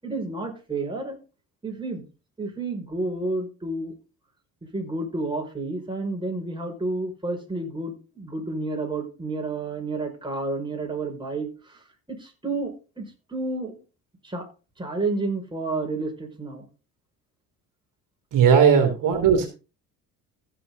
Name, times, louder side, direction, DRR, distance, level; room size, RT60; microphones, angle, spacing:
voice 1, 0.0-1.2 1.6-2.1 2.4-3.9 4.7-11.8 12.1-13.7 14.2-14.5 14.8-16.7 18.7-18.9 19.3-19.5, right 2 dB, 15° right, 1 dB, 5.8 m, -30 dB
voice 2, 18.3-19.5, right 7 dB, 60° right, 5 dB, 2.6 m, -17 dB
15.0 x 7.2 x 4.0 m, 0.33 s
hypercardioid pair, 65°, 37 cm